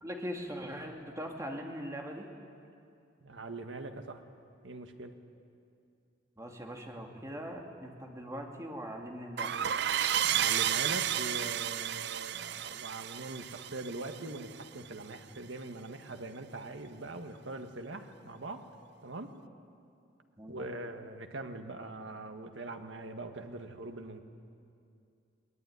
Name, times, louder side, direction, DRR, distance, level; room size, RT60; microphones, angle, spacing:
voice 1, 0.0-2.3 6.4-9.5 20.4-20.7, equal, 15° right, 1 dB, 2.5 m, -41 dB
voice 2, 3.2-4.2 4.6-5.1 10.3-18.7 19.0-19.3 20.5-24.2, right 2 dB, 80° right, 6 dB, 1.7 m, -42 dB
sound 1, 9.4-14.7, right 10 dB, 60° right, 0.5 m, -32 dB
21.5 x 20.0 x 9.8 m, 2.5 s
head